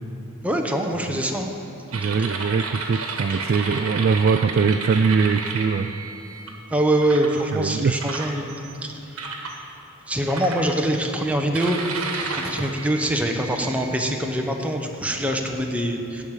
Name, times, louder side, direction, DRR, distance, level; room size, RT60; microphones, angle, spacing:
voice 1, 0.4-1.5 6.7-9.2 10.1-11.8 12.4-16.2, right 1 dB, 5° right, 2 dB, 0.8 m, -24 dB
voice 2, 1.9-5.9 7.5-8.0, right 5 dB, 45° right, 9 dB, 0.3 m, -22 dB
sound 1, 1.9-6.5 7.0-7.4 8.0-8.7 9.2-9.6 10.3-11.0 11.5-13.9, right 4 dB, 70° right, 1.3 m, -32 dB
14.5 x 4.8 x 8.9 m, 2.7 s
head